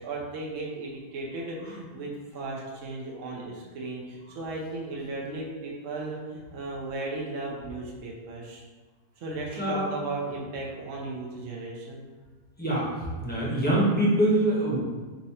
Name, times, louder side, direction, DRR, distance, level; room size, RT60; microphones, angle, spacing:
voice 1, 0.0-8.6 9.2-12.0, right 2 dB, 60° right, -2 dB, 1.1 m, -36 dB
voice 2, 13.2-14.8, right 1 dB, 10° left, -7 dB, 0.8 m, -24 dB
4.2 x 2.6 x 4.2 m, 1.3 s
omnidirectional pair, 1.7 m